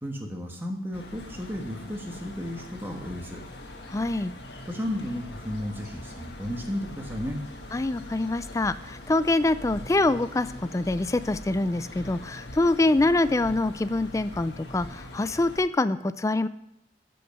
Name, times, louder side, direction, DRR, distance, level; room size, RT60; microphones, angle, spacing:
voice 1, 0.0-3.4 4.6-7.4, left 1 dB, 10° right, 1 dB, 1.4 m, -33 dB
sound 1, 0.9-15.6, left 1 dB, 75° left, 1.4 m, -42 dB
voice 2, 3.9-4.3 7.7-10.5 10.7-16.5, left 2 dB, 15° left, 14 dB, 0.3 m, -25 dB
12.5 x 5.4 x 6.7 m, 0.82 s
head